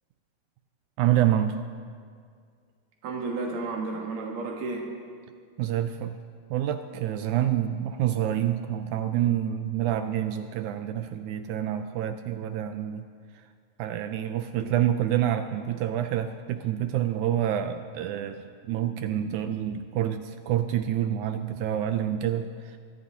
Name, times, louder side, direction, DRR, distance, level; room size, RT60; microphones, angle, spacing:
voice 1, 1.0-1.6 5.6-6.2 6.5-13.0 13.8-22.8, right 11 dB, 80° right, 8 dB, 1.7 m, -27 dB
voice 2, 3.0-4.9 14.6-14.8, right 3 dB, 60° right, -1 dB, 2.3 m, -32 dB
24.5 x 14.0 x 2.8 m, 2.1 s
omnidirectional pair, 3.9 m